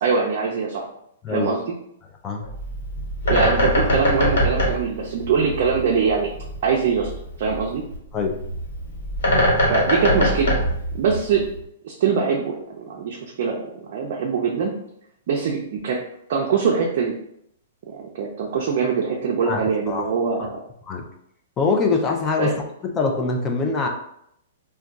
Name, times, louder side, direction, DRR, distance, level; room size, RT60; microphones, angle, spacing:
voice 1, 0.0-0.8 1.3-1.6 3.3-6.3 6.6-7.1 7.4-7.8 9.7-10.6 10.9-11.4 11.8-14.7 15.3-16.0 16.3-17.1 17.9-20.6 22.4-22.6, right 5 dB, 50° right, -2 dB, 0.5 m, -23 dB
Bird, 2.4-11.6, equal, 80° left, 1.3 m, -23 dB
voice 2, 19.5-20.1 20.9-21.0 21.6-22.5 22.8-23.9, left 4 dB, 20° left, 2 dB, 0.4 m, -23 dB
2.3 x 2.2 x 3.8 m, 0.73 s
hypercardioid pair, 160°, 0 cm